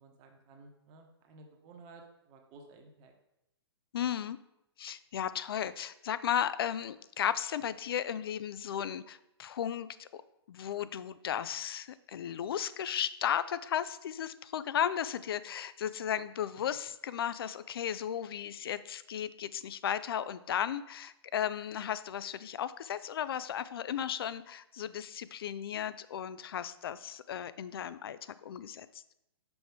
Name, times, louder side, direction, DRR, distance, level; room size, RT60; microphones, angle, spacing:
voice 1, 0.0-3.1, right 3 dB, 35° right, 3 dB, 1.0 m, -55 dB
voice 2, 3.9-4.4 4.8-10.2 10.5-29.0, left 9 dB, 60° left, 15 dB, 0.4 m, -35 dB
6.0 x 4.8 x 3.6 m, 0.85 s
figure-of-eight pair, 120°, 14 cm